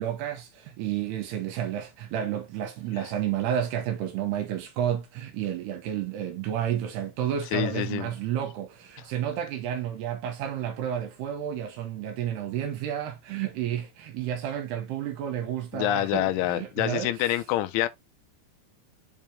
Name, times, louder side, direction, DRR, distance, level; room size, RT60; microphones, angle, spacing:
voice 1, 0.0-17.4, right 10 dB, 75° right, 2.8 m, -31 dB
voice 2, 7.5-8.1 15.7-17.9, left 15 dB, 85° left, 3.1 m, -26 dB
7.5 x 4.2 x 3.4 m
omnidirectional pair, 5.4 m